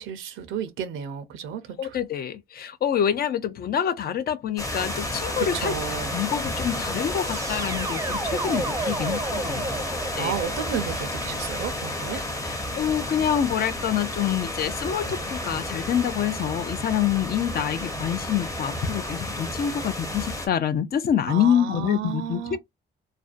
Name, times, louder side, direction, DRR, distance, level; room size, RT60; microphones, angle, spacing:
voice 1, 0.0-2.0 5.4-6.2 10.1-12.2 21.3-22.6, right 8 dB, 80° right, 0.5 m, -32 dB
voice 2, 1.8-5.7 6.1-10.3 12.1-22.6, left 9 dB, 50° left, 0.5 m, -26 dB
sound 1, 4.6-20.5, left 1 dB, 15° left, 0.7 m, -31 dB
sound 2, 7.2-12.1, right 3 dB, 15° right, 0.5 m, -33 dB
2.5 x 2.1 x 2.4 m
cardioid pair, 90°, 20 cm